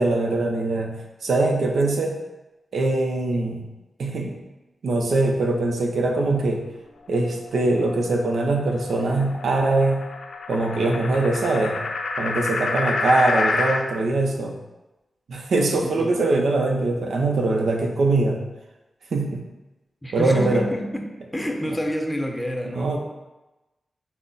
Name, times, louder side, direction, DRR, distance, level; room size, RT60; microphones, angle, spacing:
voice 1, 0.0-2.2 2.7-3.6 4.0-4.3 4.8-6.6 7.1-10.0 10.5-11.8 12.2-14.6 15.3-18.4 19.1-19.4 20.1-20.6 22.8-23.0, right 2 dB, 80° right, 1 dB, 0.6 m, -22 dB
sound 1, 7.1-13.9, left 3 dB, 80° left, 0.5 m, -29 dB
voice 2, 15.8-16.2 20.0-21.1 21.3-23.0, equal, 15° left, 3 dB, 0.7 m, -28 dB
6.0 x 2.1 x 4.0 m, 1.0 s
cardioid pair, 65°, 0 cm